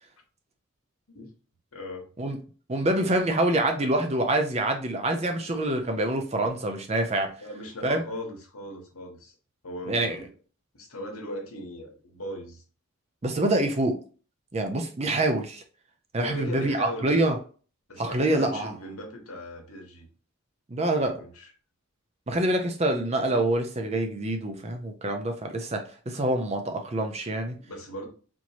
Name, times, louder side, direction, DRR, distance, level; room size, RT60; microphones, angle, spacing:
voice 1, 1.7-2.1 7.4-9.3 9.6-10.3 10.7-12.6 16.2-17.2 17.9-20.0 20.8-21.5 27.6-28.1, left 1 dB, 90° left, 2 dB, 1.3 m, -39 dB
voice 2, 2.7-7.3 7.8-8.0 9.9-10.2 13.2-14.0 14.5-15.6 16.1-17.4 18.0-18.7 20.7-21.2 22.3-27.6, right 1 dB, 30° right, 5 dB, 0.5 m, -26 dB
4.3 x 3.0 x 2.8 m, 0.38 s
head